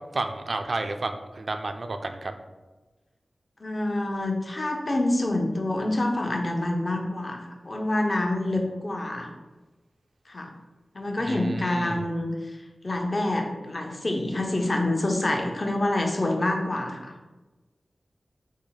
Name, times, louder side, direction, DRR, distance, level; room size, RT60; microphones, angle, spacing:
voice 1, 0.1-2.3 11.3-12.0, right 2 dB, 55° right, 7 dB, 0.4 m, -31 dB
voice 2, 3.6-9.3 10.3-10.5 10.9-17.1, left 1 dB, 40° left, 2 dB, 0.7 m, -27 dB
6.2 x 2.1 x 3.9 m, 1.2 s
wide cardioid pair, 80°, 0 cm